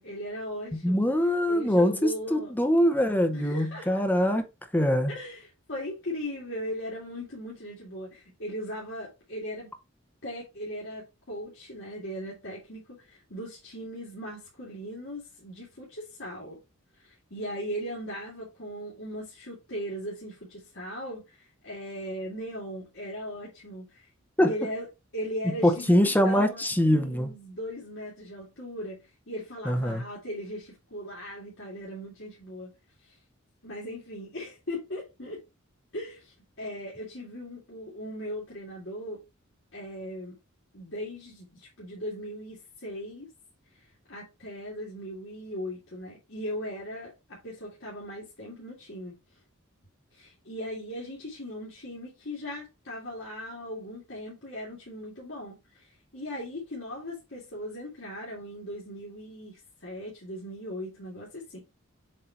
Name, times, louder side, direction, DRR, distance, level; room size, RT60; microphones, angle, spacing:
voice 1, 0.0-1.1 1.5-2.5 3.3-4.0 5.1-9.7 10.2-16.6 17.0-24.1 24.4-24.9 25.1-32.7 33.0-33.2 33.6-35.4 35.9-39.2 39.7-40.4 40.7-43.3 43.7-49.1 50.1-61.6, equal, 60° left, 2.2 m, -38 dB
voice 2, 0.8-4.4 4.7-5.1 24.4-24.5 25.6-27.3 29.6-30.0, equal, 10° left, 0.8 m, -23 dB
7.6 x 2.8 x 4.5 m
head